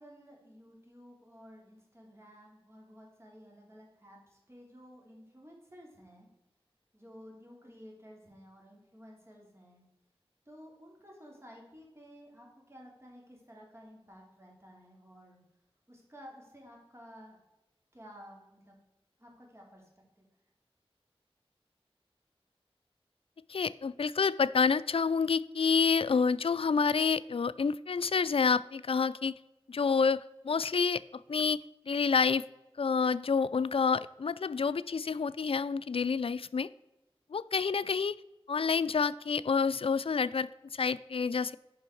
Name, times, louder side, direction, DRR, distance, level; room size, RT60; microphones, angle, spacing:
voice 1, 0.0-6.3 6.9-9.8 10.4-15.4 15.9-17.4 17.9-18.8 19.2-19.9 20.2-20.3, equal, 25° right, -1 dB, 3.2 m, -53 dB
voice 2, 23.5-29.3 29.7-31.0 31.3-31.6 31.9-32.4 32.8-36.7 37.3-38.2 38.5-41.6, left 5 dB, 65° left, 16 dB, 0.3 m, -28 dB
9.7 x 5.4 x 4.5 m, 0.97 s
wide cardioid pair, 45°, 10 cm